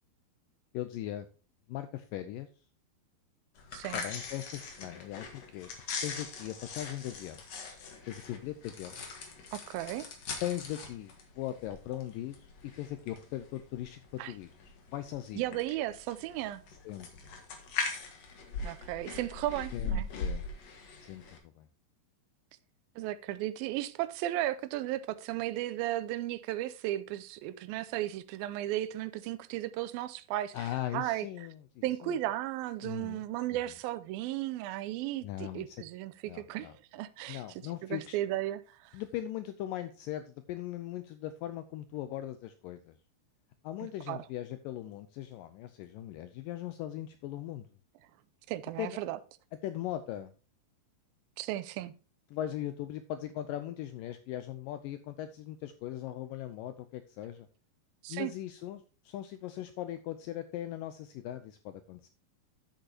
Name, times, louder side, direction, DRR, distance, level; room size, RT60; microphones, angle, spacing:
voice 1, 0.7-1.3 1.7-2.5 3.9-5.7 6.0-7.4 8.1-8.9 10.4-12.5 12.8-15.6 16.7-17.1 19.7-20.5 21.1-21.7 30.5-32.2 32.8-33.2 35.2-35.8 36.3-36.7 37.3-38.2 38.9-43.0 43.6-47.7 48.8-49.0 49.6-50.3 52.3-57.5 58.1-62.1, left 13 dB, 85° left, 2.0 m, -39 dB
sound 1, 3.6-21.4, left 4 dB, 50° left, 2.3 m, -41 dB
voice 2, 3.7-4.1 9.5-10.1 14.2-14.3 15.4-16.6 18.6-20.1 23.0-30.7 30.9-31.5 31.8-37.4 37.8-39.0 44.1-44.2 48.5-49.2 51.4-51.9 58.0-58.3, right 14 dB, 80° right, 2.3 m, -35 dB
10.5 x 7.9 x 2.8 m
omnidirectional pair, 4.5 m